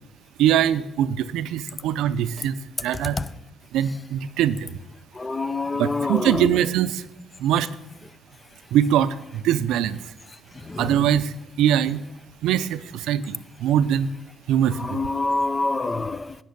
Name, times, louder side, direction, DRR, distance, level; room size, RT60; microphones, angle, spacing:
voice 1, 0.4-2.5 2.8-3.2 3.7-4.8 5.8-7.0 7.4-7.7 8.7-10.0 10.8-12.0 12.4-14.1 14.5-15.0, right 10 dB, 90° right, 0.5 m, -22 dB
voice 2, 5.2-6.5 10.6-10.8 14.8-16.4, left 3 dB, 25° left, 0.5 m, -26 dB
10.0 x 6.0 x 8.4 m
cardioid pair, 90°, 0 cm